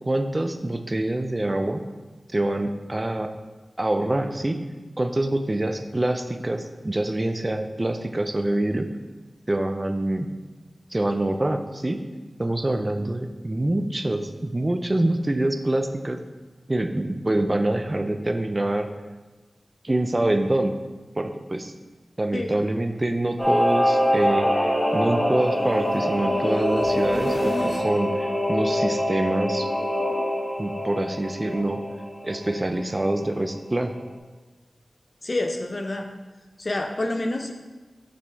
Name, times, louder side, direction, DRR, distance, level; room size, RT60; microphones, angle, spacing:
voice 1, 0.0-1.8 2.3-3.3 3.8-4.6 5.0-8.9 9.5-10.3 10.9-12.0 12.4-16.2 16.7-18.9 19.8-20.7 21.2-21.7 22.2-29.7 30.6-31.8 32.2-34.0, right 1 dB, 35° right, 7 dB, 0.5 m, -25 dB
sound 1, 22.9-27.9 28.3-30.1, equal, 25° left, 1.5 m, -37 dB
Singing / Musical instrument, 23.4-33.4 33.7-33.8, equal, 10° left, 2.0 m, -25 dB
voice 2, 35.2-36.1 36.6-37.5, left 2 dB, 50° left, 5 dB, 0.7 m, -28 dB
6.8 x 5.9 x 3.5 m, 1.2 s
cardioid pair, 40°, 0 cm